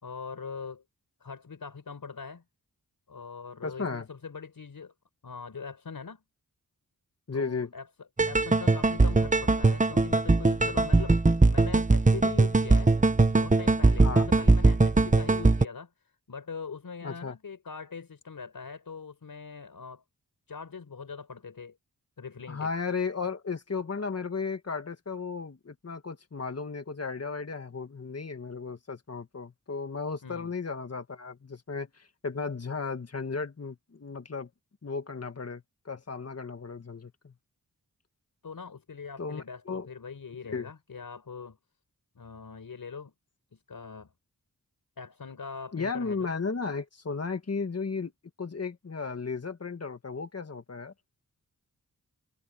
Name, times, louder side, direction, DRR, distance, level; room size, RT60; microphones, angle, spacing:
voice 1, 0.0-0.8 1.2-2.4 3.1-4.9 5.2-6.2 7.3-7.9 8.3-11.2 11.5-12.9 13.3-15.9 16.3-20.0 20.5-21.8 22.2-22.7 30.2-30.5 38.4-41.6 42.1-43.1 43.5-44.1 45.0-46.3, left 5 dB, 75° left, 4.4 m, -42 dB
voice 2, 3.6-4.1 7.3-7.7 14.0-14.3 17.0-17.4 22.5-34.5 34.8-37.3 39.2-39.9 40.5-40.7 45.7-48.1 48.4-50.9, left 4 dB, 45° left, 1.8 m, -35 dB
sound 1, 8.2-15.6, right 3 dB, 20° right, 1.0 m, -21 dB
wide cardioid pair, 85°, 34 cm